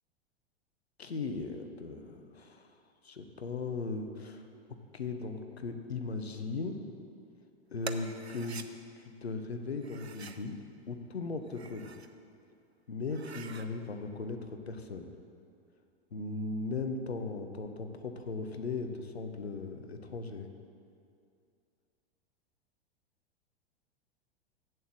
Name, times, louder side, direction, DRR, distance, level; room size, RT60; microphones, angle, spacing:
voice 1, 1.0-2.7 3.0-6.8 7.7-8.6 9.0-10.6 10.9-11.9 12.9-15.1 16.1-20.5, left 3 dB, 80° left, 6 dB, 0.9 m, -38 dB
sound 1, 7.8-8.7 9.8-10.4 11.4-12.1 12.6-12.7 13.0-13.7, right 5 dB, 85° right, 0.5 m, -45 dB
7.9 x 7.4 x 6.4 m, 2.4 s
figure-of-eight pair, 95°, 31 cm